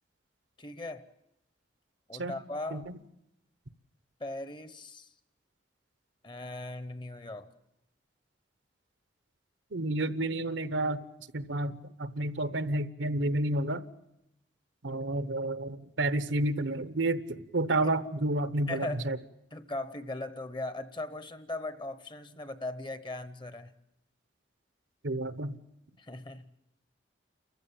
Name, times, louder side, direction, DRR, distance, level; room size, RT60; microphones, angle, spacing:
voice 1, 0.6-1.1 2.1-2.9 4.2-5.1 6.2-7.5 18.7-19.1 19.5-23.7 26.0-26.5, left 2 dB, 25° left, 0.9 m, -39 dB
voice 2, 9.7-11.0 11.3-13.8 14.8-19.2 25.0-25.5, right 2 dB, 75° right, 1.0 m, -30 dB
29.0 x 15.0 x 8.8 m
head